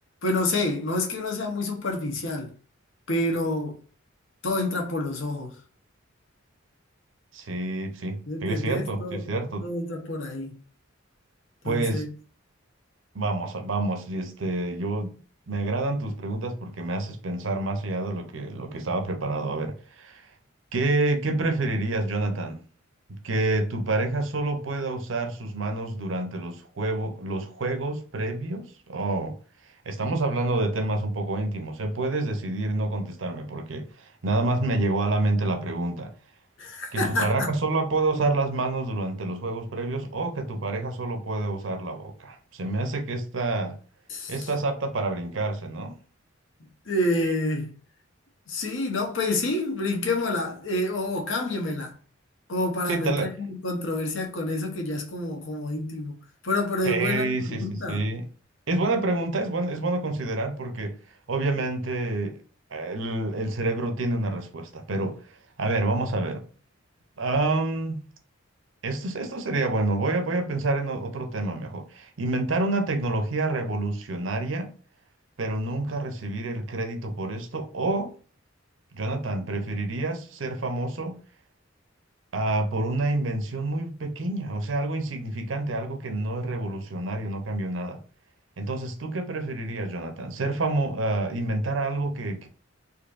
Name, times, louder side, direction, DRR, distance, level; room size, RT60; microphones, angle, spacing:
voice 1, 0.2-2.5 3.1-3.8 4.4-5.5 8.3-9.2 9.6-10.6 11.6-12.1 36.6-37.5 44.1-44.5 46.8-47.7 48.5-51.9 52.5-56.2 56.4-58.0, left 2 dB, 70° left, 1.1 m, -28 dB
voice 2, 7.3-9.7 11.6-12.0 13.1-15.2 15.5-20.2 20.7-22.6 23.1-29.4 29.9-36.1 36.9-43.7 44.3-46.0 52.9-53.3 56.8-58.3 58.7-60.9 61.3-62.4 62.7-65.2 65.6-66.4 67.2-68.1 68.8-74.7 75.4-78.1 78.9-81.2 82.3-88.0 88.6-92.5, right 2 dB, 70° right, 0.7 m, -28 dB
4.3 x 2.7 x 2.5 m
head